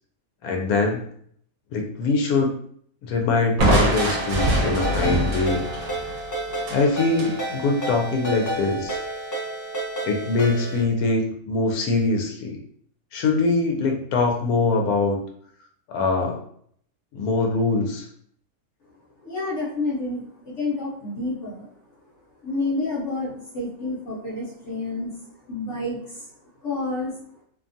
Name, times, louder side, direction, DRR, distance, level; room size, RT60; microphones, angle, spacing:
voice 1, 0.4-1.1 1.7-2.5 3.0-5.6 6.7-9.0 10.1-12.6 13.1-15.2 15.9-16.4 17.1-18.1, left 3 dB, 80° left, 2 dB, 1.1 m, -23 dB
Crushing, 3.6-7.4, right 1 dB, 75° right, 1.0 m, -24 dB
Ringtone, 4.0-10.8, right 1 dB, 30° left, 0.3 m, -31 dB
voice 2, 19.2-21.7 22.4-26.3 26.6-27.2, left 2 dB, 60° left, -5 dB, 1.0 m, -29 dB
2.7 x 2.2 x 2.6 m, 0.63 s
omnidirectional pair, 1.5 m